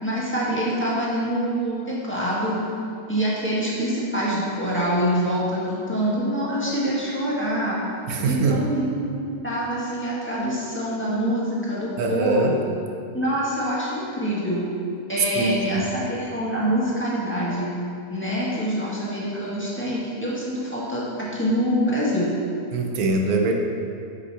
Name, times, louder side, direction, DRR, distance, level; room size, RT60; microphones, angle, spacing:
voice 1, 0.0-2.6 3.1-7.8 8.2-9.1 9.4-12.6 13.1-14.6 15.1-17.7 18.1-22.3, equal, 10° left, -8 dB, 1.7 m, -25 dB
voice 2, 8.1-8.6 12.0-12.6 15.3-15.8 22.7-23.5, right 3 dB, 85° right, 2 dB, 1.3 m, -23 dB
7.0 x 5.5 x 6.0 m, 2.6 s
omnidirectional pair, 1.5 m